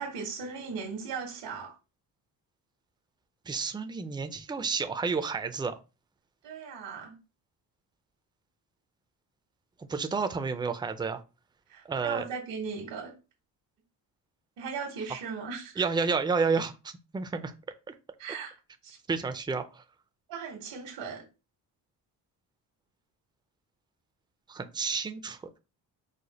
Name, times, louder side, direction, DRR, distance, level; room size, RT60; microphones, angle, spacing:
voice 1, 0.0-1.8 6.4-7.2 11.7-13.1 14.6-15.9 18.2-18.5 18.8-19.0 20.3-21.2, right 5 dB, 80° right, 1.4 m, -38 dB
voice 2, 3.5-5.7 9.8-11.2 11.9-12.2 15.8-17.5 17.9-18.0 19.1-19.8 24.5-25.4, right 4 dB, 10° right, 0.4 m, -30 dB
4.9 x 2.1 x 4.0 m
cardioid pair, 90°, 43 cm